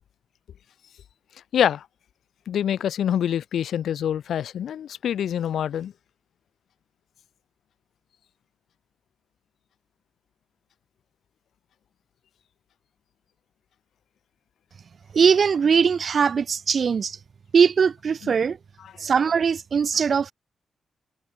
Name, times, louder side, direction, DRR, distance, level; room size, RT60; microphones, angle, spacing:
voice 1, 1.5-1.9 2.5-5.9 18.2-18.3 18.8-18.9, left 9 dB, 85° left, 0.5 m, -25 dB
voice 2, 15.1-17.2 17.5-18.6 19.0-20.3, right 6 dB, 55° right, 0.4 m, -20 dB
cardioid pair, 100°, 0 cm